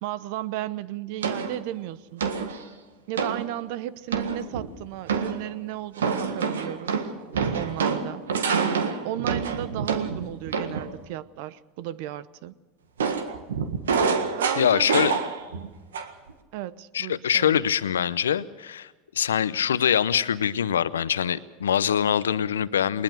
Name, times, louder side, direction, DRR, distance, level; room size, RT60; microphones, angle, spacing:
voice 1, 0.0-2.2 3.1-7.0 7.5-8.2 9.0-12.6 14.4-14.9 15.6-15.7 16.5-17.6, right 14 dB, 65° right, 18 dB, 0.9 m, -34 dB
sound 1, 1.2-1.6 2.2-2.6 3.2-3.4 4.1-4.7 5.1-5.5 6.0-10.9 13.0-15.7 15.9-16.3, right 5 dB, 85° right, 1.6 m, -27 dB
voice 2, 14.6-15.2 16.9-18.9 19.1-23.0, left 9 dB, 85° left, 16 dB, 0.6 m, -23 dB
21.0 x 20.5 x 6.5 m, 1.2 s
hypercardioid pair, 85°, 0 cm